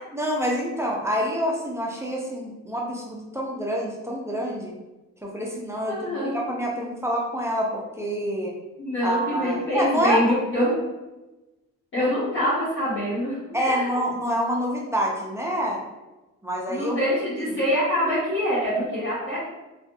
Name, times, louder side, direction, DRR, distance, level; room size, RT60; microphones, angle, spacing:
voice 1, 0.1-4.7 5.2-8.5 9.0-10.2 12.0-12.1 13.5-15.8 16.4-16.9 17.4-17.5, equal, 10° right, -2 dB, 0.5 m, -27 dB
voice 2, 5.9-6.5 8.8-10.7 11.9-13.9 16.7-19.4, equal, 40° left, -9 dB, 0.9 m, -25 dB
2.4 x 2.4 x 2.5 m, 1.1 s
cardioid pair, 90°, 30 cm